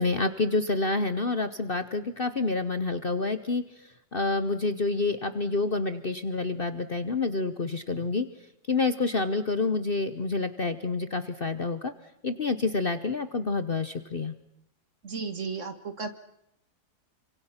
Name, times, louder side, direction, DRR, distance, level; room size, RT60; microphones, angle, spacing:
voice 1, 0.0-3.6 4.1-8.3 8.7-11.9 12.2-14.3, left 3 dB, 40° left, 11 dB, 1.1 m, -28 dB
voice 2, 15.0-16.1, right 4 dB, 45° right, 9 dB, 2.0 m, -34 dB
28.0 x 25.5 x 5.8 m, 0.81 s
omnidirectional pair, 1.8 m